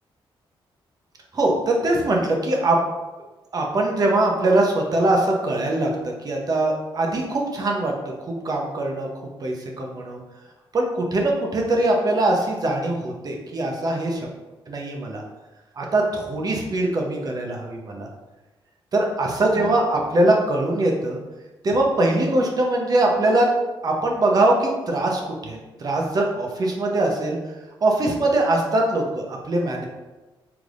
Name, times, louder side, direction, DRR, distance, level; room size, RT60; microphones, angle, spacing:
voice 1, 1.3-2.8 3.5-7.9 8.2-9.1 9.4-10.2 10.7-14.3 14.7-15.2 15.8-18.1 18.9-21.2 21.6-23.5 23.8-27.4 27.8-29.9, right 2 dB, 40° right, 0 dB, 0.8 m, -22 dB
4.9 x 3.6 x 2.5 m, 1.1 s
cardioid pair, 110°, 9 cm